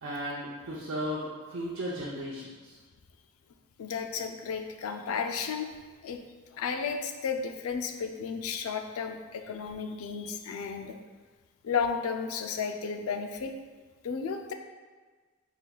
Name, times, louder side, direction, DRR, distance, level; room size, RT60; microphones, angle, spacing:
voice 1, 0.0-2.7, equal, 70° right, -7 dB, 0.7 m, -35 dB
voice 2, 3.8-5.7 6.0-6.2 6.5-11.0 11.6-13.5 14.0-14.5, left 6 dB, 70° left, 5 dB, 0.4 m, -33 dB
4.5 x 3.9 x 2.3 m, 1.4 s
head